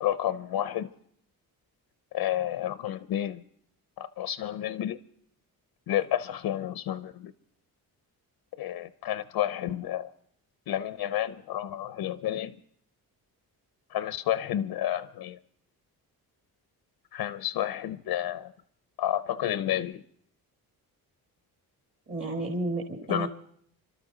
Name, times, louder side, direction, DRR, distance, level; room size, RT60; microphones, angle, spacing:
voice 1, 0.0-0.9 2.1-3.4 4.0-5.0 5.9-7.3 8.6-10.1 10.7-12.6 13.9-15.4 17.1-18.5 19.0-20.0 23.1-23.3, left 12 dB, 80° left, 0.6 m, -30 dB
voice 2, 22.1-23.3, right 2 dB, 30° right, 1.7 m, -31 dB
27.5 x 13.0 x 3.9 m
wide cardioid pair, 175°, 38 cm